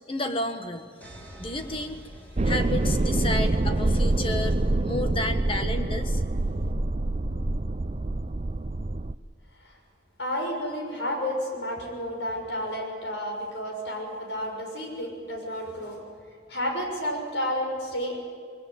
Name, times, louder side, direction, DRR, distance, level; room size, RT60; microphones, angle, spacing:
voice 1, 0.1-0.9 1.4-2.1 2.4-6.2, left 1 dB, 30° left, 7 dB, 1.5 m, -31 dB
sound 1, 1.0-3.9, equal, 10° left, 4.4 m, -47 dB
sound 2, 2.4-9.1, right 2 dB, 35° right, 0.6 m, -26 dB
voice 2, 10.2-16.0 16.5-18.2, equal, 75° left, 2 dB, 6.4 m, -31 dB
27.0 x 20.5 x 8.9 m, 2.1 s
head